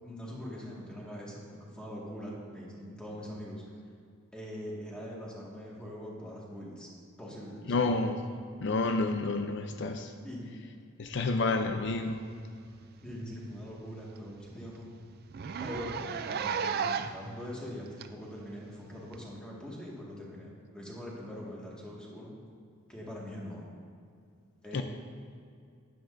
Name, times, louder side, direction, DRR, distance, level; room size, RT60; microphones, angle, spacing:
voice 1, 0.0-3.6 4.3-6.9 7.2-7.6 10.2-10.5 11.1-11.2 13.0-14.9 15.6-22.3 22.9-23.6 24.6-24.8, equal, 5° left, -5 dB, 1.8 m, -42 dB
voice 2, 7.7-8.2 8.6-10.1 11.0-12.2 24.7-24.8, left 3 dB, 55° left, 6 dB, 0.5 m, -29 dB
Zipper (clothing), 12.7-12.9 13.2-13.3 13.7-13.8 14.1-14.2 14.5-14.6 15.3-17.3 18.0-18.1 19.1-19.2, right 6 dB, 45° right, 0.3 m, -33 dB
12.0 x 10.0 x 2.6 m, 2.3 s
head